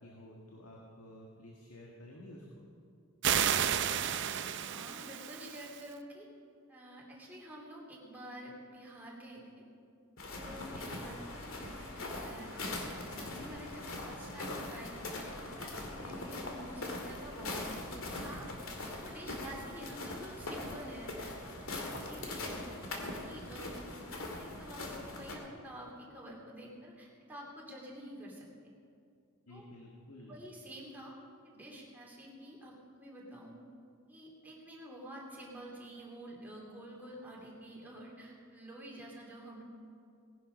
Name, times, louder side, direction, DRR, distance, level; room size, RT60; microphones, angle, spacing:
voice 1, 0.0-2.5 29.5-30.4, left 1 dB, 85° left, -1 dB, 1.7 m, -52 dB
sound 1, 3.2-5.8, right 9 dB, 55° right, 0.6 m, -32 dB
voice 2, 4.6-6.3 6.7-9.6 10.2-12.6 13.0-17.8 18.1-18.5 18.9-22.9 23.2-23.8 24.3-28.4 29.5-29.6 30.3-31.1 31.4-33.5 34.1-39.6, equal, 10° right, -3 dB, 2.8 m, -49 dB
sound 2, 10.2-25.3, left 2 dB, 65° left, 2.2 m, -41 dB
18.5 x 11.0 x 5.2 m, 2.4 s
head